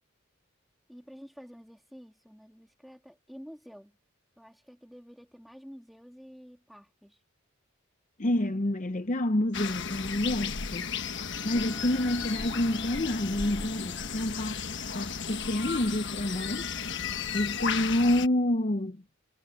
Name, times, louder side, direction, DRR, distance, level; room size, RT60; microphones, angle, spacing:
voice 1, 0.9-3.9 4.4-7.2, equal, ahead, 2.3 m, -49 dB
voice 2, 8.2-10.9 11.4-14.6 14.9-16.7 17.3-19.0, left 1 dB, 35° left, 0.7 m, -28 dB
sound 1, 9.5-18.3, left 6 dB, 55° left, 1.3 m, -34 dB
Bowed string instrument, 11.2-15.6, left 1 dB, 20° left, 3.1 m, -50 dB
head